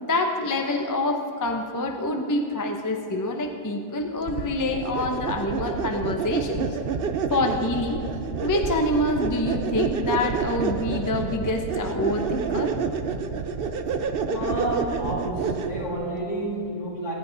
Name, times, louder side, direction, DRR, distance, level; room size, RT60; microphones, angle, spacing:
voice 1, 0.0-6.7 7.3-8.0 8.4-12.7, left 2 dB, 15° left, 3 dB, 0.7 m, -26 dB
sound 1, 4.3-15.9, right 5 dB, 55° right, 0.6 m, -28 dB
voice 2, 14.3-17.1, right 1 dB, 65° left, -5 dB, 3.8 m, -30 dB
23.0 x 10.5 x 4.0 m, 2.6 s
omnidirectional pair, 1.8 m